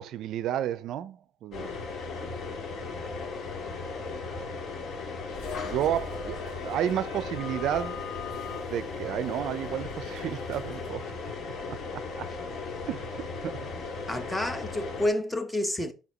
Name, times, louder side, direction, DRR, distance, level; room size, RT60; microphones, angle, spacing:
voice 1, 0.0-1.8 5.6-8.1 8.7-11.0 11.4-12.3 12.9-13.6, right 11 dB, 60° right, 0.5 m, -32 dB
sound 1, 1.5-15.1, left 4 dB, 45° left, 1.7 m, -36 dB
lift beeps, 5.3-11.8, left 6 dB, 80° left, 3.8 m, -44 dB
voice 2, 14.1-15.9, left 1 dB, 10° left, 1.0 m, -29 dB
5.5 x 5.0 x 5.4 m
cardioid pair, 140°, 0 cm